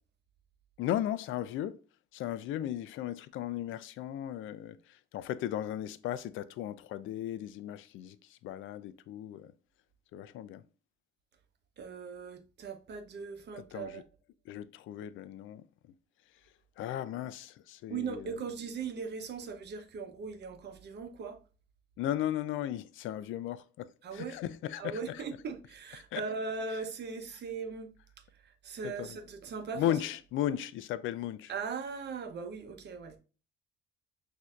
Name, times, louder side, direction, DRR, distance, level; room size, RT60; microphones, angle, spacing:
voice 1, 0.8-1.8 2.1-9.5 10.1-10.6 13.5-14.0 14.5-15.6 16.8-18.4 22.0-25.2 26.1-26.2 28.8-29.2 29.7-31.5, left 12 dB, 80° left, 0.4 m, -36 dB
voice 2, 11.8-14.0 17.9-21.4 24.0-24.4 24.8-27.9 28.3-30.0 31.5-33.2, right 5 dB, 60° right, 0.8 m, -39 dB
6.2 x 2.7 x 2.4 m
cardioid pair, 90°, 20 cm